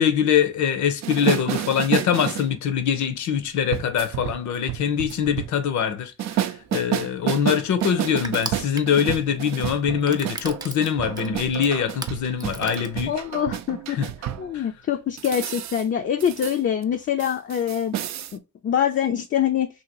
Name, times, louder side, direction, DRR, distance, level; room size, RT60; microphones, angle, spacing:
voice 1, 0.0-13.1 13.9-14.1 14.5-14.7, left 8 dB, 70° left, 0.8 m, -23 dB
sound 1, 1.0-2.5 3.7-5.5 6.2-14.5 15.2-15.8 16.2-16.6 16.8-16.9 17.2-18.3, right 12 dB, 65° right, 0.4 m, -29 dB
Crushing, 6.6-13.4, right 2 dB, 15° right, 0.5 m, -39 dB
voice 2, 13.1-14.0 14.4-18.0 18.3-19.7, left 9 dB, 40° left, 0.4 m, -24 dB
2.9 x 2.8 x 2.9 m
cardioid pair, 90°, 30 cm